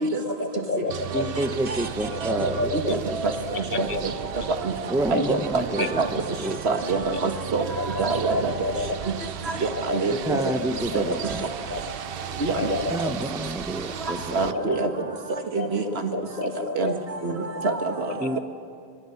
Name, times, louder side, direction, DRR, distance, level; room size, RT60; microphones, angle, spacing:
voice 1, 0.2-1.3 2.1-3.0 3.5-4.1 5.1-5.3 5.8-5.9 7.1-7.2 7.8-7.9 8.3-9.0 9.8-10.7 11.0-11.2 11.7-11.8 12.5-13.1 14.4-15.1 15.5-16.9 17.5-17.7 18.1-18.4, left 3 dB, 55° left, 10 dB, 1.2 m, -30 dB
sound 1, 0.9-14.5, right 9 dB, 65° right, 0.9 m, -36 dB
voice 2, 1.1-3.2 3.7-4.0 4.9-6.8 7.2-7.3 10.2-11.4 12.9-14.9 18.2-18.4, right 1 dB, 5° right, 9 dB, 0.8 m, -30 dB
voice 3, 5.1-5.6 6.0-6.1 6.7-7.6 8.0-8.5 9.6-10.4 11.0-11.1 12.4-12.8 14.3-14.9 15.5-15.8 16.8-16.9 17.2-18.4, right 3 dB, 85° right, 6 dB, 1.9 m, -25 dB
27.0 x 24.5 x 5.9 m, 2.3 s
omnidirectional pair, 1.0 m